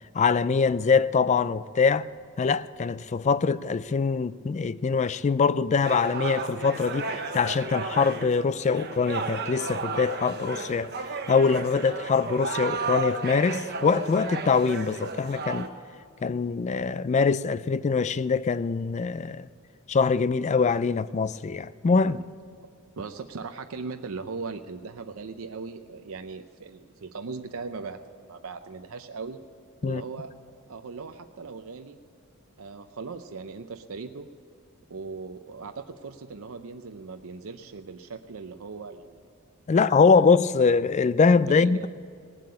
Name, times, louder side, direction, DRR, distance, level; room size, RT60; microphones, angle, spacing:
voice 1, 0.1-2.1 2.4-10.9 11.3-15.7 16.2-19.5 19.9-22.2 29.8-30.0 39.7-41.8, left 5 dB, 30° left, 0.3 m, -23 dB
sound 1, 5.8-15.7, right 4 dB, 50° right, 1.1 m, -33 dB
voice 2, 23.0-29.4 29.8-32.0 32.6-34.3 34.9-39.2 39.8-40.0 41.5-41.9, right 4 dB, 75° right, 0.6 m, -39 dB
18.0 x 7.7 x 8.5 m
head